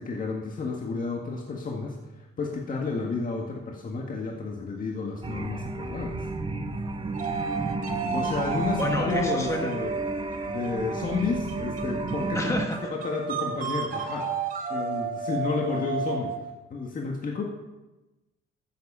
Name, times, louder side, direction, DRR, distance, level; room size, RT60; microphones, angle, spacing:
voice 1, 0.0-6.3 8.1-10.0 10.5-12.6 12.9-14.3 14.7-16.3 16.7-17.5, left 4 dB, 45° left, 0 dB, 1.8 m, -31 dB
sound 1, 5.2-12.7, right 3 dB, 25° right, 1.0 m, -33 dB
sound 2, 7.1-16.6, right 5 dB, 45° right, 2.9 m, -32 dB
voice 2, 8.8-9.7 12.3-12.9, left 1 dB, 15° left, 2 dB, 1.5 m, -30 dB
14.5 x 7.8 x 5.6 m, 1.1 s
cardioid pair, 90°, 20 cm